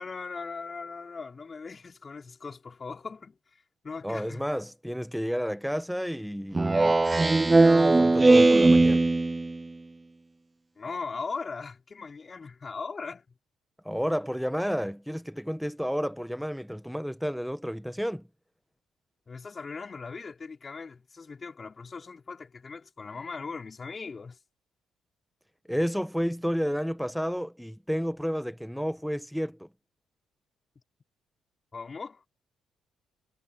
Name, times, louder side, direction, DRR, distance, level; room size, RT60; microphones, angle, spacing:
voice 1, 0.0-4.4 10.8-13.3 19.3-24.4 31.7-32.2, left 4 dB, 40° left, 5.5 m, -39 dB
voice 2, 4.0-9.1 13.8-18.3 25.7-29.7, equal, ahead, 1.4 m, -31 dB
Speech synthesizer, 6.5-9.6, right 2 dB, 25° right, 0.4 m, -19 dB
hypercardioid pair, 50°, 0 cm